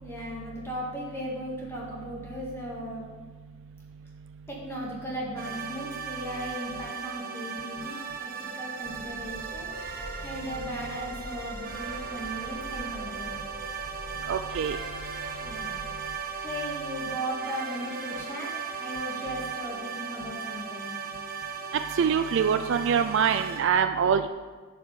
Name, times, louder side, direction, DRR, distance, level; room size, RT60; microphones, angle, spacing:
voice 1, 0.0-3.1 4.5-9.7 10.2-13.4 15.4-15.7 16.4-18.5 18.8-21.0, equal, 10° left, -4 dB, 1.7 m, -37 dB
sound 1, 5.4-23.6, right 6 dB, 40° right, 1.2 m, -37 dB
sound 2, 8.8-16.7, right 1 dB, 35° left, 1.5 m, -43 dB
voice 2, 14.3-14.8 22.0-24.3, right 7 dB, 60° right, 8 dB, 0.4 m, -24 dB
11.5 x 4.7 x 6.8 m, 1.4 s
head